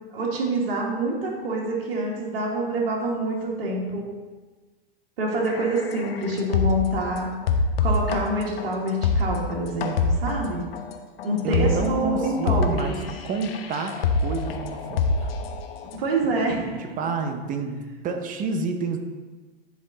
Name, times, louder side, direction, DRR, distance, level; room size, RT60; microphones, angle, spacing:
voice 1, 0.1-4.1 5.2-7.3 7.8-10.6 11.2-12.6 12.9-13.1 15.9-16.8, right 1 dB, 65° right, -2 dB, 1.9 m, -26 dB
sound 1, 5.5-7.0 7.4-16.0, left 4 dB, 70° left, 1.0 m, -26 dB
voice 2, 11.4-13.0 13.2-15.3 16.8-19.0, right 4 dB, 25° right, 6 dB, 0.8 m, -29 dB
10.5 x 3.7 x 4.1 m, 1.3 s
hypercardioid pair, 115°, 30 cm